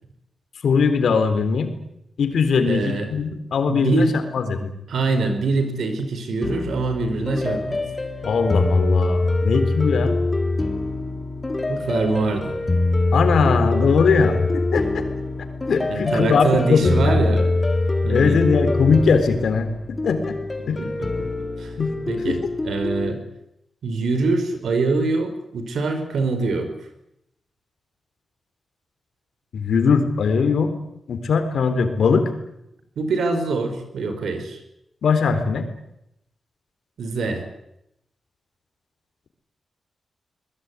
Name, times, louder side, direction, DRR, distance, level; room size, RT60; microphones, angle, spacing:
voice 1, 0.6-1.7 2.2-4.7 8.2-10.2 13.1-15.0 15.7-17.2 18.1-19.7 20.0-20.2 20.7-20.8 21.8-21.9 22.3-22.4 29.5-30.7 31.1-32.3 35.0-35.7, left 5 dB, 80° left, 8 dB, 4.0 m, -20 dB
voice 2, 2.7-3.1 3.7-4.1 4.9-7.8 11.7-12.5 15.9-17.5 18.0-18.4 20.8-21.1 21.6-21.7 22.1-22.4 22.6-23.2 23.8-26.7 33.0-34.6 37.0-37.4, right 3 dB, 80° right, 8 dB, 4.9 m, -24 dB
sound 1, 6.4-23.1, left 2 dB, 30° left, 3.6 m, -24 dB
23.0 x 20.5 x 9.8 m, 0.83 s
cardioid pair, 70°, 0 cm